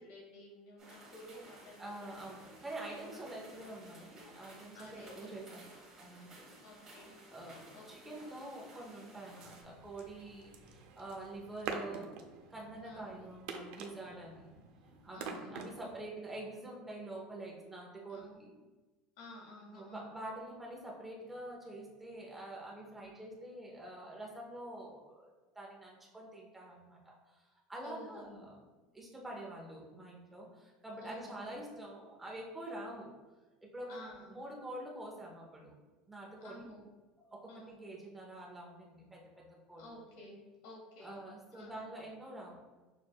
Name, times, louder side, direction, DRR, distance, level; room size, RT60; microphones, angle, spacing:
voice 1, 0.0-3.2 3.5-3.7 4.7-5.3 6.6-7.1 7.7-8.1 12.8-13.0 15.1-15.8 18.1-18.4 19.2-20.1 22.9-23.1 27.8-28.4 31.0-31.6 33.9-34.4 36.4-36.8 37.5-37.8 39.7-41.2 41.5-41.8, left 1 dB, 85° left, -2 dB, 1.3 m, -53 dB
sound 1, 0.8-9.6, right 2 dB, 25° right, 1.3 m, -56 dB
voice 2, 1.8-6.5 7.3-12.1 12.5-14.5 15.0-18.5 19.7-28.6 28.9-33.1 33.6-34.0 34.3-35.7 36.1-36.7 37.3-39.9 41.0-42.6, right 1 dB, 5° right, -3 dB, 0.8 m, -46 dB
sound 2, 9.4-16.0, right 5 dB, 70° right, 0.5 m, -47 dB
6.5 x 2.5 x 2.2 m, 1.2 s
cardioid pair, 140°, 2 cm